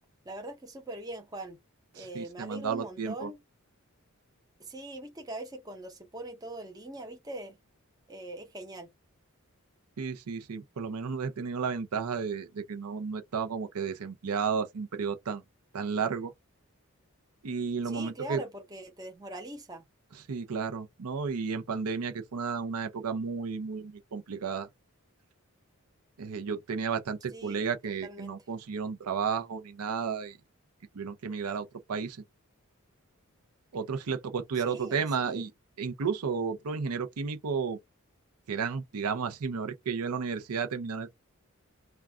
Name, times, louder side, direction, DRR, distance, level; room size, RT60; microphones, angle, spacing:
voice 1, 0.3-1.6 1.9-3.4 4.6-7.6 8.1-8.9 17.8-19.8 27.3-27.6 28.0-28.4 34.6-35.4, right 1 dB, 15° right, 0.6 m, -42 dB
voice 2, 1.9-3.3 10.0-15.4 15.7-16.3 17.4-18.4 20.1-24.7 26.2-30.4 30.9-32.2 33.7-35.5 35.8-37.8 38.5-41.2, right 5 dB, 85° right, 0.5 m, -33 dB
2.4 x 2.2 x 3.4 m
head